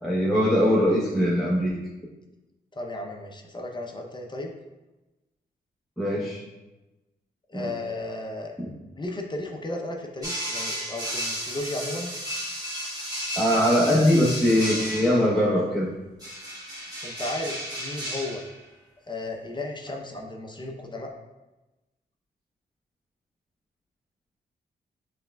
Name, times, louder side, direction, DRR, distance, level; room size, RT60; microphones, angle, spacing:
voice 1, 0.0-1.7 6.0-6.4 7.5-7.7 8.6-8.7 13.3-15.9, equal, ahead, -7 dB, 0.9 m, -22 dB
voice 2, 2.7-4.5 7.5-8.6 9.0-12.1 17.0-18.4 19.1-21.1, left 2 dB, 25° left, 1 dB, 0.6 m, -34 dB
sound 1, 10.2-15.3 16.2-18.6, equal, 20° right, 1.5 m, -33 dB
6.8 x 3.3 x 2.3 m, 1.1 s
cardioid pair, 75°, 18 cm